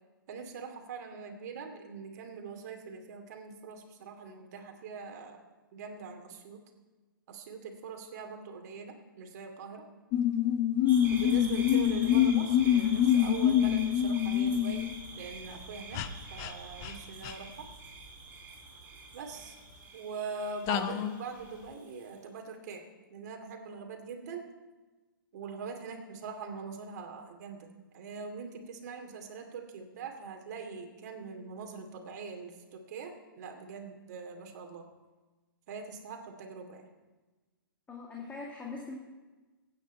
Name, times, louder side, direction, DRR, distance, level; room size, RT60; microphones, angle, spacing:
voice 1, 0.3-5.4 5.7-6.6 7.3-9.8 11.1-14.9 15.2-16.0 16.3-17.7 19.1-19.6 19.9-22.8 23.1-24.5 25.3-27.7 27.9-34.8 35.7-36.9, right 5 dB, 50° right, 4 dB, 2.4 m, -42 dB
sound 1, 10.1-14.9 15.9-16.1 16.4-16.5 16.8-16.9 17.2-17.3 20.7-21.2, left 10 dB, 30° left, 0.7 m, -26 dB
sound 2, 10.8-22.0, right 3 dB, 15° right, 5.1 m, -46 dB
voice 2, 37.9-39.0, left 4 dB, 10° left, -2 dB, 1.8 m, -41 dB
23.0 x 9.3 x 4.5 m, 1.2 s
hypercardioid pair, 130°, 12 cm